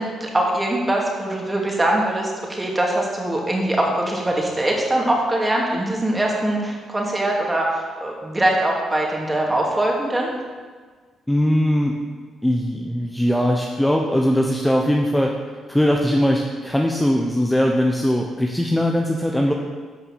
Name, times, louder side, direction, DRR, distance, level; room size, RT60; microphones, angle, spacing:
voice 1, 0.0-10.3, right 1 dB, 15° right, -1 dB, 2.6 m, -22 dB
voice 2, 11.3-11.9 12.4-15.3 15.7-19.5, equal, 5° left, 1 dB, 1.0 m, -20 dB
11.0 x 5.6 x 7.3 m, 1.5 s
cardioid pair, 90°, 0 cm